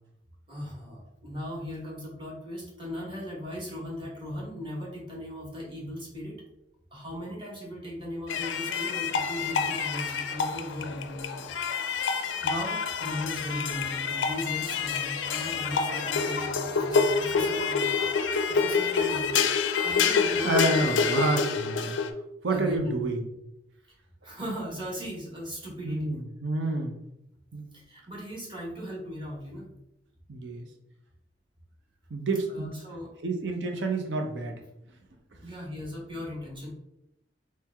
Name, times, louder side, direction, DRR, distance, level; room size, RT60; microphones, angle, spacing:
voice 1, 0.5-6.3 6.9-11.5 12.1-17.9 18.5-19.3 19.8-20.9 22.5-23.0 24.2-26.1 27.9-29.7 32.5-33.1 35.4-36.7, left 1 dB, 30° right, -3 dB, 1.3 m, -37 dB
sound 1, 8.3-22.1, left 5 dB, 85° left, 0.4 m, -27 dB
Laughter / Crowd, 15.3-17.9 18.6-18.7, equal, 45° right, 1.2 m, -46 dB
voice 2, 20.4-22.0 22.4-23.2 25.8-27.0 27.5-27.7 30.3-30.7 32.1-32.7 33.2-34.6, right 2 dB, 75° right, 3 dB, 0.6 m, -28 dB
3.2 x 3.2 x 3.4 m, 0.84 s
head